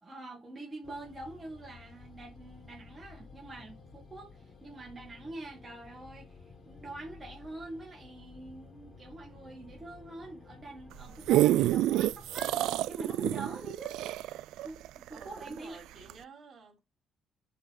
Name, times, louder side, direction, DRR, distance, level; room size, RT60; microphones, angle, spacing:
voice 1, 0.0-6.4 6.6-14.0 14.6-15.8, right 2 dB, 20° right, 2.6 m, -44 dB
sound 1, 0.8-12.8, left 4 dB, 45° left, 2.1 m, -53 dB
sound 2, 10.9-15.6 16.1-16.2, right 14 dB, 90° right, 0.3 m, -28 dB
voice 2, 15.1-16.8, right 4 dB, 50° right, 4.2 m, -51 dB
9.2 x 3.9 x 3.9 m
cardioid pair, 115°, 0 cm